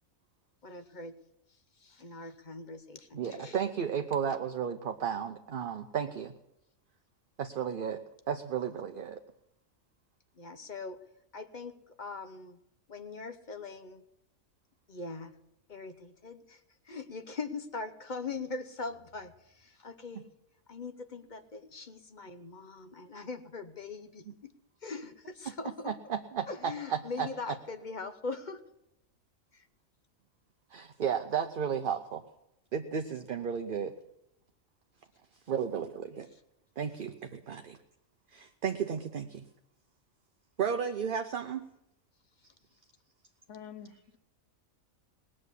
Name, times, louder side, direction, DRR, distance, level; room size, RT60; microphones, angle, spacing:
voice 1, 0.6-1.1 1.8-3.6 10.4-11.0 11.3-12.6 12.9-14.0 14.9-15.3 15.7-20.3 20.7-24.5 24.8-25.9 26.5-28.6 29.5-29.7 36.3-36.4, left 4 dB, 40° left, 0.8 m, -41 dB
voice 2, 3.1-6.3 7.6-9.2 24.3-24.4 25.8-27.6 30.7-32.2 32.7-33.9 35.5-36.3 36.8-37.8 38.3-39.5 40.6-41.7, right 7 dB, 50° right, 0.7 m, -33 dB
voice 3, 43.5-44.2, left 8 dB, 65° left, 1.2 m, -47 dB
19.5 x 7.5 x 8.2 m
omnidirectional pair, 1.4 m